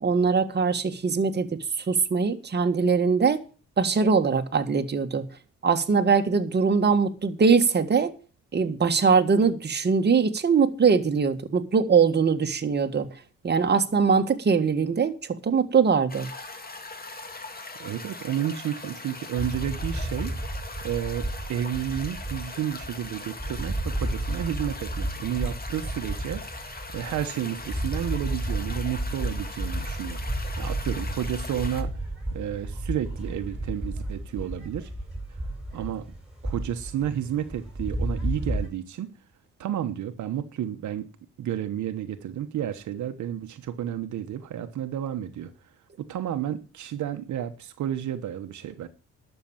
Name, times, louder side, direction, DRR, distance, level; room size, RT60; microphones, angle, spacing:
voice 1, 0.0-3.4 3.8-5.2 5.6-8.1 8.5-13.1 13.4-16.3, right 5 dB, 35° right, 1.6 m, -22 dB
sound 1, 16.1-31.8, left 3 dB, 30° left, 2.3 m, -41 dB
voice 2, 17.8-20.5 20.8-31.9 32.3-34.9 35.7-36.1 36.4-39.1 39.6-41.1 41.4-45.5 46.0-48.9, right 10 dB, 70° right, 1.2 m, -31 dB
sound 2, 19.4-38.7, right 1 dB, 5° right, 7.4 m, -32 dB
12.0 x 6.9 x 8.8 m
cardioid pair, 90°, 30 cm